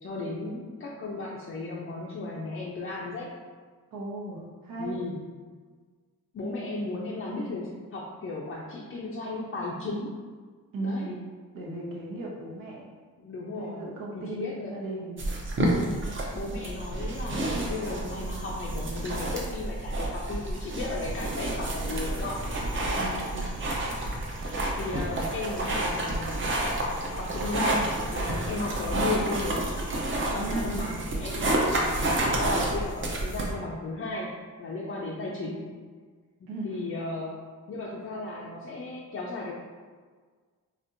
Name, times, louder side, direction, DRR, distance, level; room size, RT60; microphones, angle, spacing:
voice 1, 0.0-3.3 4.8-5.2 6.3-10.1 10.8-11.2 13.2-13.8 14.1-14.8 16.3-22.5 24.6-26.7 27.2-29.6 30.3-32.0 32.3-34.3 34.6-35.7 36.4-37.4 37.7-39.5, left 2 dB, 40° left, -4 dB, 0.4 m, -35 dB
voice 2, 3.9-5.0 10.7-11.2 11.5-12.9 13.6-15.1 15.6-16.0 22.9-23.5 30.4-30.8 36.5-36.8, right 2 dB, 80° right, -3 dB, 0.9 m, -36 dB
sound 1, 15.2-33.5, right 1 dB, 35° right, 0.6 m, -29 dB
4.3 x 2.7 x 2.5 m, 1.5 s
wide cardioid pair, 140°, 33 cm